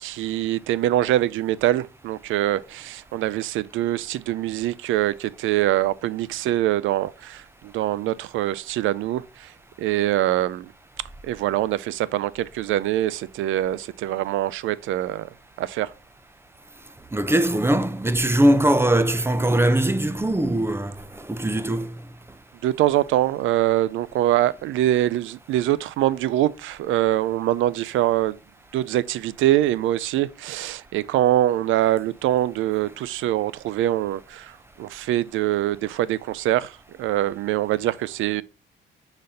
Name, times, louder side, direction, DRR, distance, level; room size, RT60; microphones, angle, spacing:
voice 1, 0.0-9.5 9.8-10.7 11.2-15.3 15.6-15.9 22.6-28.4 28.7-34.5 34.8-38.4, right 13 dB, 80° right, 0.4 m, -24 dB
voice 2, 17.1-22.0, right 1 dB, 10° right, 0.6 m, -21 dB
6.5 x 4.0 x 4.0 m
cardioid pair, 90°, 20 cm